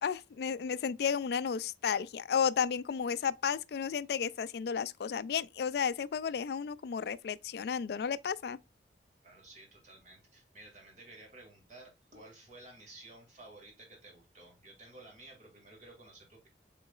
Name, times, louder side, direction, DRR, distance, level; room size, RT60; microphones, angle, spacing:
voice 1, 0.0-8.6, left 7 dB, 60° left, 0.3 m, -33 dB
voice 2, 9.2-16.5, right 2 dB, 40° right, 2.1 m, -54 dB
5.9 x 3.8 x 2.4 m
head